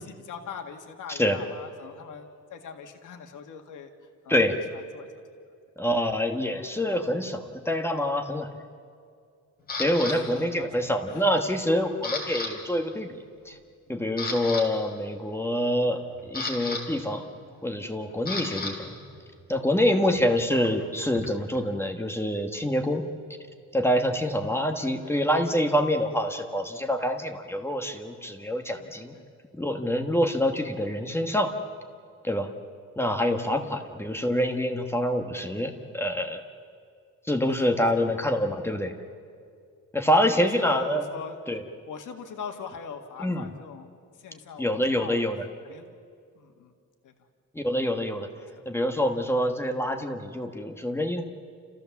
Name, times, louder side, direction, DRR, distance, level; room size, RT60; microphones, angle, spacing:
voice 1, 0.0-3.9 4.2-5.1 10.0-11.3 24.7-25.4 28.8-29.2 33.4-33.5 37.5-38.2 40.2-41.6 41.9-45.2 45.6-46.0 46.4-46.7 47.0-47.1 48.4-48.6, left 6 dB, 80° left, 5 dB, 1.8 m, -42 dB
voice 2, 5.8-8.5 9.8-13.2 13.4-13.6 13.9-17.2 17.6-19.0 19.5-23.0 23.7-29.1 29.6-31.5 32.2-32.5 33.0-36.4 37.3-38.9 39.9-41.0 41.5-41.6 43.2-43.4 44.6-45.4 47.5-48.3 48.6-51.2, equal, 10° left, 4 dB, 1.3 m, -26 dB
Camera, 9.7-10.2 10.8-11.1 11.4-12.5 12.8-13.0 13.5-13.6 14.0-14.6 15.8-18.7 19.0-21.6, left 3 dB, 30° left, 3.3 m, -35 dB
30.0 x 15.0 x 7.2 m, 2.2 s
cardioid pair, 155°, 31 cm